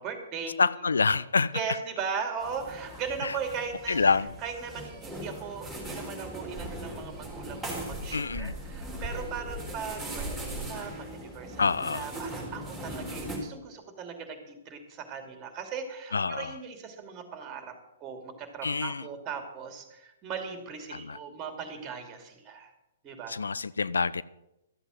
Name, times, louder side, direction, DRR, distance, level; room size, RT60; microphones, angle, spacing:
voice 1, 0.0-0.6 1.5-4.1 4.4-11.6 11.9-17.7 18.0-22.7 23.0-23.3, right 6 dB, 30° right, 2.8 m, -38 dB
voice 2, 0.6-1.6 3.2-3.3 3.9-4.3 8.1-8.6 11.6-12.1 16.1-16.6 18.6-19.0 20.9-21.2 23.3-24.2, left 4 dB, 80° left, 0.5 m, -27 dB
sound 1, 2.4-13.4, right 1 dB, 5° right, 4.0 m, -39 dB
13.5 x 8.0 x 7.5 m
figure-of-eight pair, 125°, 0 cm